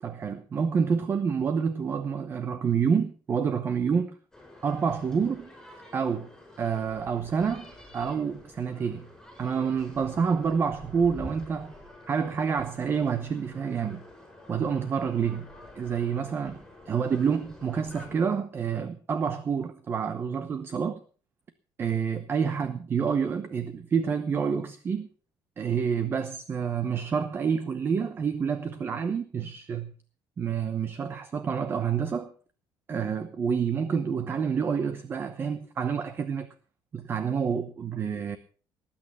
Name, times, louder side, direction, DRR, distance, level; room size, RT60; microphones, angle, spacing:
voice 1, 0.0-4.2 4.6-5.5 5.9-6.3 6.6-9.1 9.4-11.7 12.1-14.0 14.5-15.5 15.7-16.6 16.9-21.0 21.8-25.1 25.6-29.9 30.4-32.3 32.9-36.5 36.9-38.4, right 6 dB, 30° right, 0.9 m, -28 dB
sound 1, 4.3-18.2, left 1 dB, 5° left, 6.5 m, -48 dB
19.0 x 8.7 x 5.5 m
cardioid pair, 165°, 8 cm